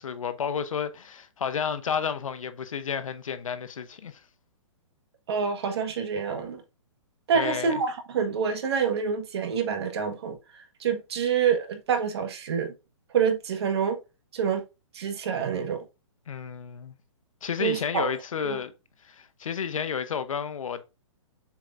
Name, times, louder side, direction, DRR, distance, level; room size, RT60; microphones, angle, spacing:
voice 1, 0.0-4.2 7.3-7.8 16.3-17.0 17.4-18.7 19.0-20.9, left 7 dB, 80° left, 1.0 m, -31 dB
voice 2, 5.3-6.6 7.3-12.7 13.1-14.0 14.3-14.6 14.9-15.8 17.6-18.1 18.4-18.6, right 7 dB, 55° right, 1.5 m, -27 dB
7.4 x 4.9 x 2.6 m
hypercardioid pair, 160°, 17 cm